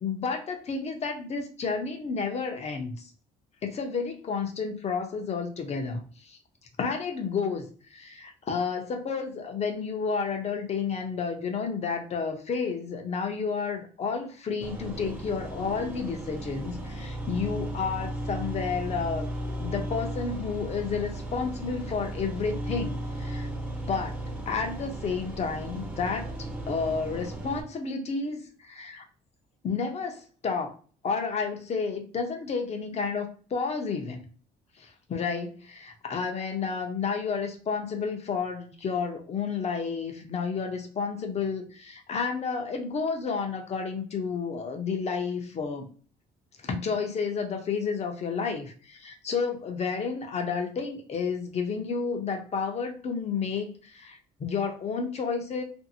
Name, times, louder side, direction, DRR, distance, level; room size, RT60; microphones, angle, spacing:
voice 1, 0.0-3.1 3.6-6.4 6.8-19.3 19.6-23.5 23.9-24.1 24.5-26.3 26.7-29.0 29.6-30.7 31.0-34.3 34.8-45.9 46.6-55.6, left 5 dB, 40° left, 4 dB, 0.7 m, -31 dB
sound 1, 14.6-27.6, right 1 dB, 10° right, 0.7 m, -35 dB
2.6 x 2.5 x 2.7 m, 0.40 s
cardioid pair, 110°, 17 cm